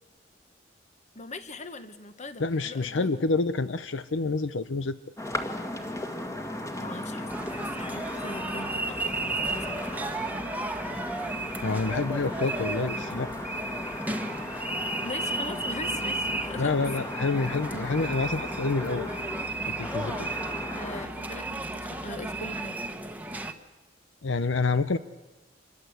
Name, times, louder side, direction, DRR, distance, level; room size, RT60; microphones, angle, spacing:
voice 1, 1.1-3.1 6.8-9.9 15.0-16.7 19.8-20.0 20.5-22.8, left 2 dB, 40° left, 10 dB, 1.5 m, -41 dB
voice 2, 2.4-5.0 11.6-13.3 16.6-19.1 19.8-20.3 24.2-25.0, left 3 dB, 75° left, 13 dB, 0.7 m, -28 dB
sound 1, 5.2-21.1, left 1 dB, 15° left, 1.9 m, -37 dB
sound 2, 7.3-23.5, right 2 dB, 10° right, 1.3 m, -34 dB
26.5 x 22.0 x 8.2 m, 1.1 s
head